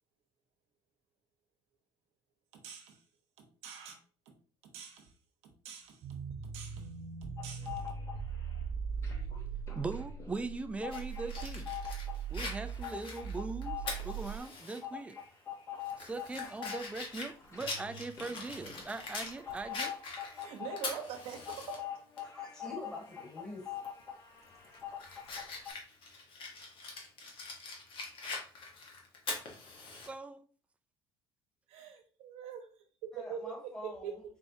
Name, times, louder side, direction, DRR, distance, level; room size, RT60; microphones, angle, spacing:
voice 1, 2.5-3.0 3.4-4.0 4.3-4.4 4.6-5.1 5.4-6.0 6.5-6.9 7.2-7.9 20.3-21.8 31.7-32.7 33.1-34.2, right 7 dB, 85° right, 0.9 m, -44 dB
sound 1, 6.0-14.4, right 6 dB, 60° right, 0.7 m, -40 dB
sound 2, 7.4-8.6 8.9-25.7, left 9 dB, 25° left, 0.9 m, -44 dB
voice 2, 9.7-11.7 12.3-15.2 16.0-19.9 30.1-30.4, right 3 dB, 10° right, 0.3 m, -40 dB
Fire, 10.9-14.8 15.2-15.3 15.8-19.3 19.7-21.8 22.2-22.3 23.8-24.0 24.5-30.1, left 3 dB, 55° left, 1.1 m, -43 dB
voice 3, 22.2-23.7 33.1-34.2, left 1 dB, 5° left, 1.5 m, -46 dB
4.3 x 3.4 x 2.7 m
cardioid pair, 130°, 11 cm